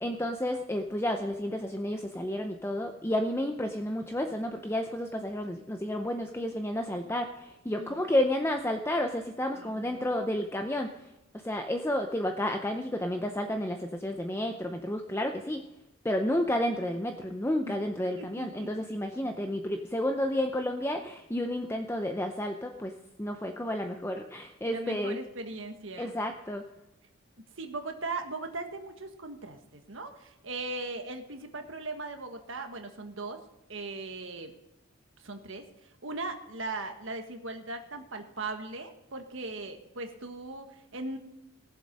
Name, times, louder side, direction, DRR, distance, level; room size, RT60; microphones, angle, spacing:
voice 1, 0.0-10.9 11.4-15.6 16.0-22.9 23.2-25.2 26.0-26.6, left 1 dB, 10° left, 5 dB, 0.6 m, -31 dB
voice 2, 9.5-10.3 17.6-17.8 18.2-18.9 24.6-26.1 27.6-33.4 33.7-34.5 35.2-41.2, right 3 dB, 65° right, 6 dB, 1.5 m, -39 dB
18.5 x 7.6 x 5.3 m, 0.93 s
head